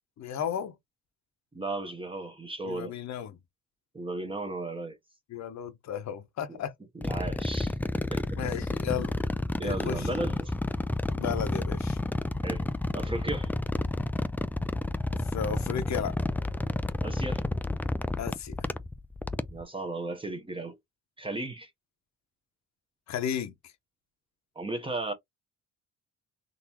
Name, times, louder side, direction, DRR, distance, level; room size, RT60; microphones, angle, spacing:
voice 1, 0.2-0.7 2.6-3.4 5.3-6.7 8.4-9.1 9.6-10.1 11.1-12.0 15.2-16.1 18.2-18.7 23.1-23.5, left 8 dB, 65° left, 1.0 m, -34 dB
voice 2, 1.5-2.9 3.9-5.0 6.5-6.6 6.9-7.7 8.1-8.2 9.6-10.5 12.4-12.7 12.9-13.5 17.0-17.4 19.5-20.8 21.2-21.7 24.6-25.1, right 2 dB, 15° right, 0.9 m, -35 dB
sound 1, 7.0-19.6, left 2 dB, 5° left, 0.3 m, -31 dB
4.0 x 2.8 x 2.9 m
cardioid pair, 90°, 30 cm